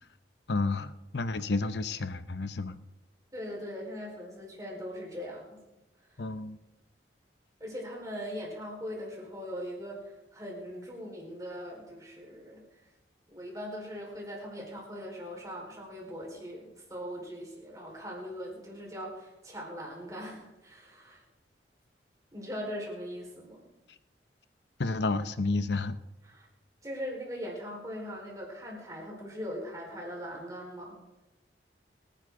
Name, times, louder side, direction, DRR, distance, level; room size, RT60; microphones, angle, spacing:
voice 1, 0.5-2.8 6.2-6.6 23.9-24.0 24.8-26.0, left 3 dB, 70° left, 12 dB, 0.8 m, -31 dB
voice 2, 3.3-5.6 6.0-6.2 7.6-12.6 13.3-21.2 22.3-23.6 26.3-26.5 26.8-31.0, equal, 20° right, -1 dB, 4.5 m, -40 dB
25.0 x 10.0 x 3.8 m, 1.0 s
head